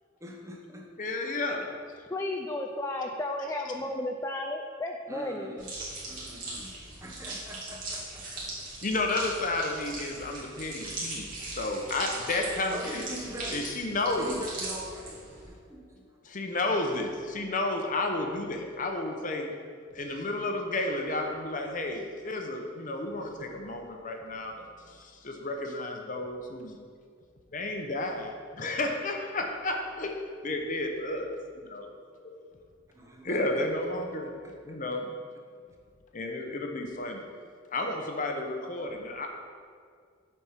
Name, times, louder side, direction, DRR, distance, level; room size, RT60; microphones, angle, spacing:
voice 1, 0.2-0.9 1.7-1.9 2.5-2.6 3.3-3.4 3.8-4.0 4.7-5.7 6.0-8.7 11.4-11.5 12.7-13.8 14.1-15.2 15.5-16.1 32.9-33.7 34.1-35.0, right 1 dB, 15° right, 0 dB, 0.8 m, -44 dB
voice 2, 1.0-1.7 8.8-11.3 11.6-13.1 13.5-14.4 16.2-19.5 19.9-24.7 25.2-26.8 27.5-30.2 30.4-31.3 31.7-31.8 33.3-34.3 34.7-35.1 36.1-37.3 37.7-39.3, left 2 dB, 40° left, 3 dB, 0.7 m, -32 dB
voice 3, 2.1-5.5, left 1 dB, 15° left, 2 dB, 0.3 m, -33 dB
sound 1, 5.6-15.5, right 2 dB, 45° right, 2.1 m, -39 dB
7.9 x 4.4 x 5.7 m, 2.1 s
head